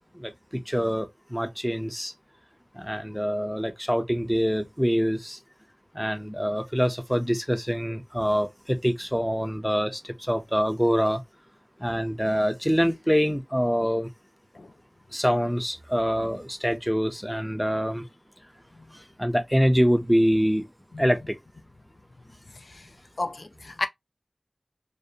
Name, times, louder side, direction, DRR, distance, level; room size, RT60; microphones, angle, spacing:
voice 1, 0.7-2.1 2.8-5.4 6.0-10.0 10.3-11.2 11.8-14.1 15.1-18.0 19.2-20.7 21.0-21.3, equal, ahead, 0.5 m, -25 dB
voice 2, 23.2-23.9, left 2 dB, 70° left, 0.3 m, -32 dB
2.5 x 2.1 x 2.6 m
wide cardioid pair, 60°, 0 cm